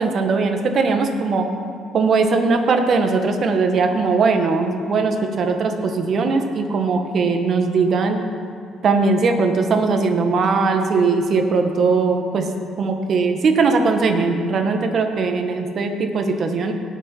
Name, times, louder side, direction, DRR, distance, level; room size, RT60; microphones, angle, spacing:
voice 1, 0.0-1.5 1.9-8.2 8.8-12.5 12.8-16.7, right 4 dB, 55° right, 5 dB, 1.3 m, -19 dB
18.0 x 6.4 x 4.5 m, 2.4 s
cardioid pair, 90°, 0 cm